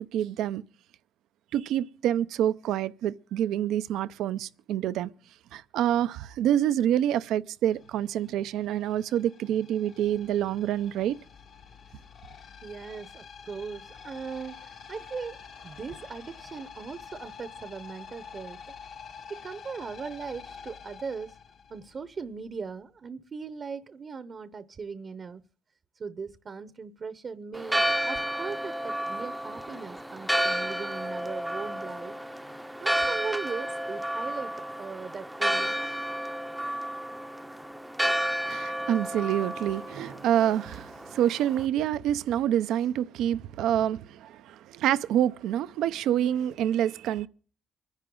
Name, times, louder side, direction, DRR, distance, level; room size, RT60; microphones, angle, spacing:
voice 1, 0.1-0.6 1.5-5.1 5.5-11.2 38.5-47.3, right 11 dB, 85° right, 0.6 m, -27 dB
sound 1, 7.7-22.3, left 6 dB, 65° left, 1.9 m, -47 dB
voice 2, 12.6-18.6 19.3-21.4 21.7-25.4 26.0-32.1 32.8-35.8, right 5 dB, 45° right, 0.8 m, -39 dB
Church bell, 27.5-41.6, equal, 5° right, 0.7 m, -31 dB
25.0 x 10.5 x 3.8 m
cardioid pair, 90°, 0 cm